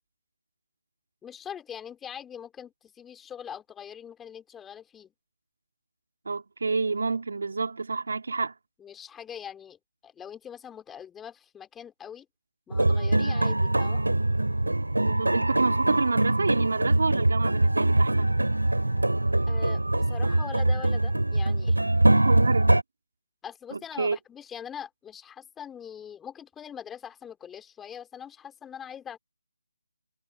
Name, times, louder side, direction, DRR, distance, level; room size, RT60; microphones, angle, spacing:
voice 1, 1.2-5.1 8.8-12.3 12.7-14.0 19.5-21.8 23.4-29.2, left 8 dB, 10° left, 3.7 m, -42 dB
voice 2, 6.3-8.5 15.0-18.4 22.2-22.7 23.7-24.2, right 4 dB, 60° right, 2.8 m, -28 dB
sound 1, 12.7-22.8, right 2 dB, 85° right, 3.0 m, -23 dB
figure-of-eight pair, 155°, 0 cm